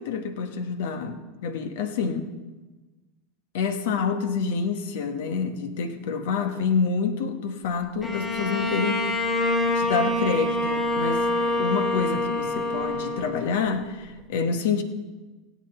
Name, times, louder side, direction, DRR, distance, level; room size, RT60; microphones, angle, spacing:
voice 1, 0.0-2.3 3.5-9.1 9.7-14.8, left 5 dB, 70° left, 8 dB, 1.2 m, -27 dB
Bowed string instrument, 8.0-13.8, left 1 dB, 25° left, 3.3 m, -26 dB
17.0 x 8.6 x 4.4 m, 1.2 s
hypercardioid pair, 90°, 0 cm